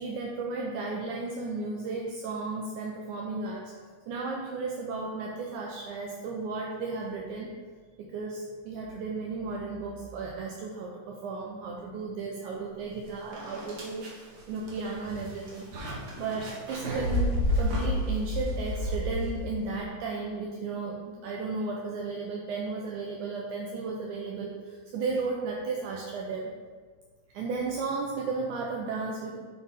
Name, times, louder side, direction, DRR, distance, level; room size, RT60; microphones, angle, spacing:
voice 1, 0.0-3.7 4.1-7.5 8.0-14.1 14.5-15.7 16.2-26.5 27.3-29.4, right 4 dB, 75° right, -1 dB, 2.0 m, -34 dB
sound 1, 12.8-12.9 13.3-19.7, left 1 dB, 55° right, 1.1 m, -31 dB
9.2 x 4.6 x 3.5 m, 1.5 s
omnidirectional pair, 3.7 m